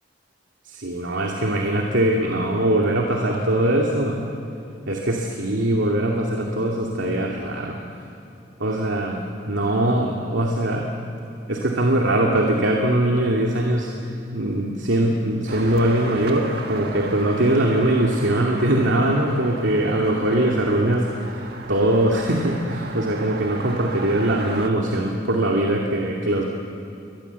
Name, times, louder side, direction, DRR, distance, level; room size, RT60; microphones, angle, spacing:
voice 1, 0.6-4.2 4.9-7.8 8.6-10.9 11.5-26.4, right 1 dB, 75° right, 0 dB, 2.4 m, -22 dB
sound 1, 15.5-24.7, right 3 dB, 55° right, 1.8 m, -36 dB
29.5 x 24.0 x 8.2 m, 2.7 s
head